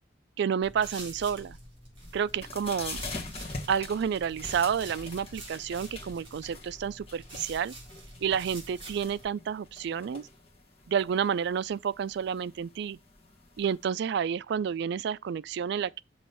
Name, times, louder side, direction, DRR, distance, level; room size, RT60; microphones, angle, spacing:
voice 1, 0.4-1.6 2.1-3.0 3.7-7.7 8.2-10.3 10.9-13.0 13.6-16.0, right 7 dB, 60° right, 0.3 m, -30 dB
sound 1, 0.6-9.2, right 2 dB, 25° right, 4.1 m, -47 dB
sound 2, 2.0-13.9, left 2 dB, 30° left, 1.4 m, -44 dB
7.0 x 3.1 x 5.5 m
head